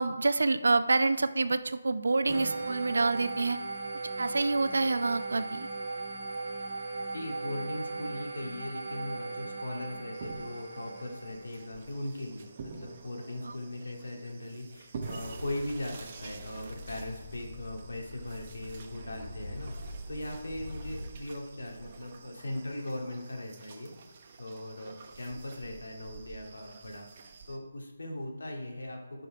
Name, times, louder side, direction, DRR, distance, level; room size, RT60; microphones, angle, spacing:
voice 1, 0.0-3.6 4.2-5.7, right 3 dB, 75° right, 11 dB, 0.7 m, -27 dB
sound 1, 2.3-11.6, right 3 dB, 40° right, 2.2 m, -38 dB
voice 2, 7.1-23.9 24.4-29.3, left 1 dB, 75° left, 1 dB, 2.2 m, -39 dB
sound 2, 10.1-27.6, right 4 dB, 25° right, 0.7 m, -48 dB
sound 3, 15.2-21.1, left 1 dB, 45° left, 1.4 m, -45 dB
11.5 x 5.3 x 4.8 m, 1.2 s
hypercardioid pair, 175°, 0 cm